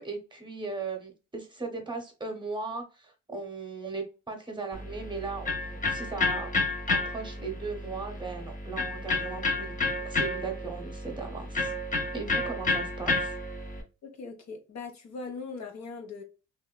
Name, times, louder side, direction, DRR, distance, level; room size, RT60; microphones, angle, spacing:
voice 1, 0.0-6.5 6.9-9.7 10.0-11.7 12.1-13.3, right 4 dB, 15° right, 0.8 m, -37 dB
Electric guitar, 4.7-13.8, left 3 dB, 25° left, 0.7 m, -31 dB
voice 2, 14.0-16.2, left 4 dB, 65° left, 0.8 m, -40 dB
2.8 x 2.3 x 2.2 m
cardioid pair, 90°, 30 cm